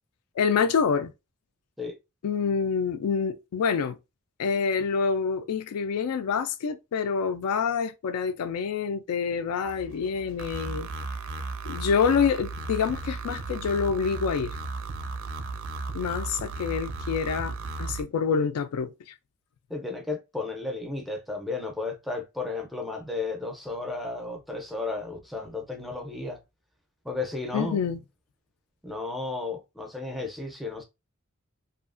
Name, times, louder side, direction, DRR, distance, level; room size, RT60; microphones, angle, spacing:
voice 1, 0.4-1.1 2.2-4.0 4.4-10.9 11.6-14.5 15.9-18.9 27.5-28.0, left 6 dB, 80° left, 0.3 m, -27 dB
sound 1, 9.6-18.0, right 3 dB, 65° right, 0.4 m, -35 dB
voice 2, 19.7-26.4 27.0-27.8 28.8-30.8, left 3 dB, ahead, 0.5 m, -33 dB
2.7 x 2.4 x 2.4 m
head